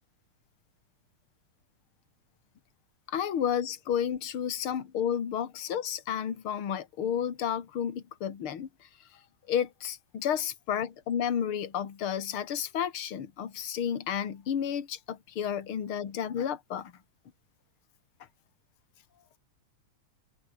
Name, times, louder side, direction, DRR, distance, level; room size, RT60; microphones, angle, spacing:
voice 1, 3.1-8.7 9.5-16.9, left 8 dB, 45° left, 2.8 m, -31 dB
omnidirectional pair, 3.4 m